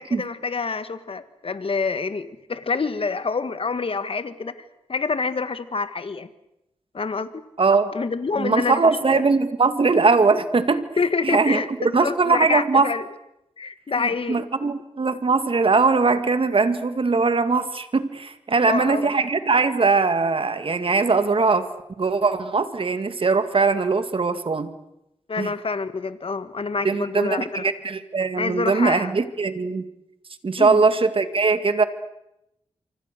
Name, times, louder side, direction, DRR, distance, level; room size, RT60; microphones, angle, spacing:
voice 1, 0.0-6.3 6.9-7.4 7.9-9.2 11.0-13.0 13.6-14.5 18.7-19.1 25.3-27.4 28.4-29.1 30.6-30.9, left 4 dB, 55° left, 12 dB, 1.7 m, -27 dB
voice 2, 7.6-7.9 8.4-10.9 11.2-11.6 11.9-12.9 14.0-21.7 22.0-24.7 25.4-25.5 26.8-29.8 30.4-31.8, right 4 dB, 50° right, 10 dB, 2.2 m, -21 dB
28.0 x 25.0 x 6.8 m, 0.86 s
cardioid pair, 55°, 11 cm